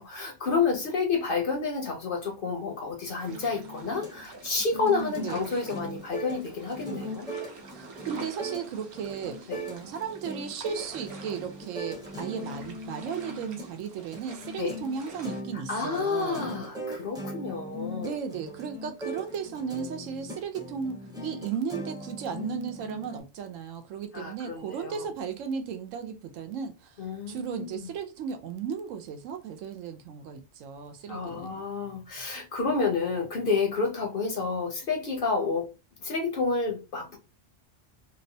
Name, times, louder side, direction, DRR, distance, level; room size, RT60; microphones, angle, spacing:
voice 1, 0.0-7.3 9.5-9.7 14.6-14.8 15.7-18.2 24.1-25.1 27.0-27.9 31.1-35.7 36.0-37.2, left 4 dB, 55° left, 0.6 m, -30 dB
sound 1, 3.1-15.4, right 3 dB, 60° right, 0.7 m, -48 dB
sound 2, 3.3-23.2, equal, 5° right, 0.5 m, -40 dB
voice 2, 4.7-5.4 7.7-16.5 18.0-31.6, right 7 dB, 85° right, 1.0 m, -35 dB
2.8 x 2.0 x 2.6 m
omnidirectional pair, 1.3 m